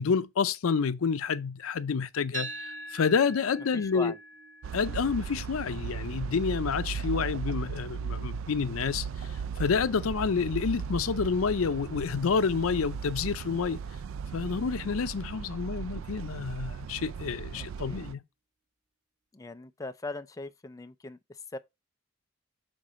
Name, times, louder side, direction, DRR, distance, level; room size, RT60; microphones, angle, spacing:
voice 1, 0.0-2.5 2.9-4.1 4.7-9.1 9.6-13.8 14.3-18.2, left 5 dB, 90° left, 0.5 m, -28 dB
sound 1, 2.3-10.5, right 2 dB, 40° right, 1.5 m, -46 dB
voice 2, 3.7-4.2 17.6-18.2 19.3-21.6, left 2 dB, 15° left, 0.4 m, -40 dB
sound 2, 4.6-18.1, right 6 dB, 70° right, 0.3 m, -37 dB
6.4 x 3.8 x 4.2 m
head